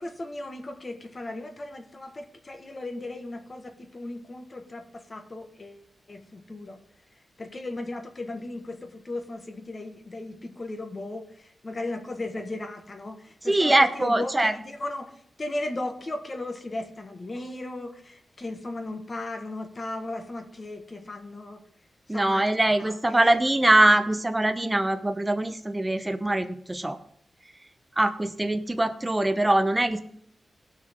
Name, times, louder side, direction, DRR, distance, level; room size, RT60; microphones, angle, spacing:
voice 1, 0.0-5.8 6.1-6.8 7.4-21.6 22.1-23.4, left 2 dB, 30° left, 5 dB, 1.5 m, -36 dB
voice 2, 13.5-14.5 22.1-27.0 28.0-30.0, right 1 dB, 15° right, 8 dB, 0.8 m, -22 dB
18.5 x 6.2 x 3.7 m, 0.66 s
wide cardioid pair, 125°, 0 cm